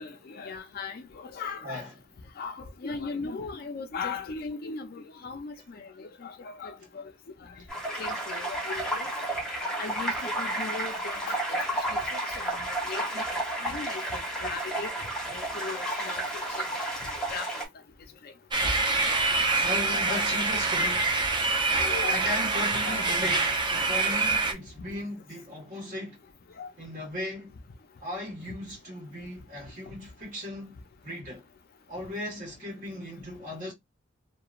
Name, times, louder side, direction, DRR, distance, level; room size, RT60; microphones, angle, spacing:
voice 1, 0.0-1.8 2.4-7.0 8.0-9.1 9.8-11.6 11.9-12.0 12.4-12.5 12.9-13.2 13.6-14.9 15.3-16.2 16.6-17.5 19.9-20.5 21.8-22.2 22.8-23.0 26.6-26.7, left 4 dB, 50° left, 0.4 m, -38 dB
sound 1, 7.7-17.7, right 1 dB, 5° left, 0.9 m, -32 dB
sound 2, 18.5-24.5, right 3 dB, 25° right, 0.5 m, -25 dB
voice 2, 19.6-21.1 22.1-26.2 26.8-27.5 28.0-30.7 31.0-31.4 31.9-33.7, left 1 dB, 40° right, 1.3 m, -37 dB
2.9 x 2.2 x 2.4 m
head